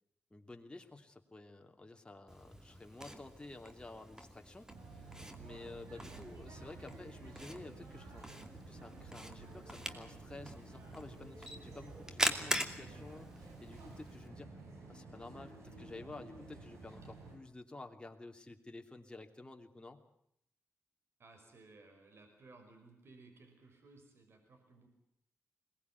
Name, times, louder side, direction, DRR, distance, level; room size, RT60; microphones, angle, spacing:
voice 1, 0.3-8.3 8.7-14.5 14.9-20.0, left 2 dB, 20° left, 4 dB, 2.9 m, -52 dB
Camera, 2.3-14.3, equal, 15° right, 2.6 m, -43 dB
sound 1, 4.7-17.4, right 3 dB, 85° right, 6.3 m, -52 dB
voice 2, 21.2-24.9, right 3 dB, 65° right, 5 dB, 5.4 m, -59 dB
22.0 x 19.0 x 9.6 m, 0.73 s
cardioid pair, 65°, 5 cm